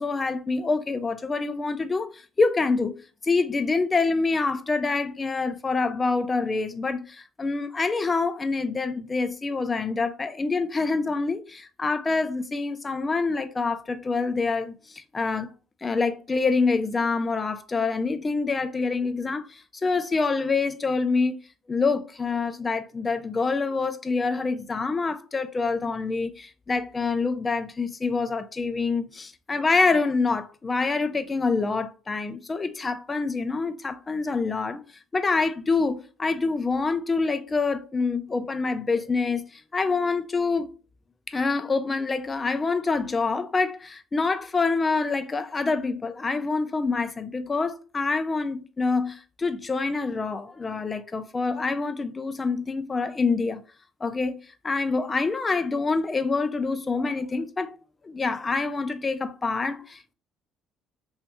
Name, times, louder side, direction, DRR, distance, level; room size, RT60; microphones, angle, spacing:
voice 1, 0.0-2.9 3.2-15.5 15.8-21.4 21.7-34.8 35.1-40.7 41.3-53.6 54.0-54.4 54.6-57.8 58.0-60.1, left 4 dB, 20° left, 0.3 m, -26 dB
2.9 x 2.6 x 3.4 m
cardioid pair, 135°, 0 cm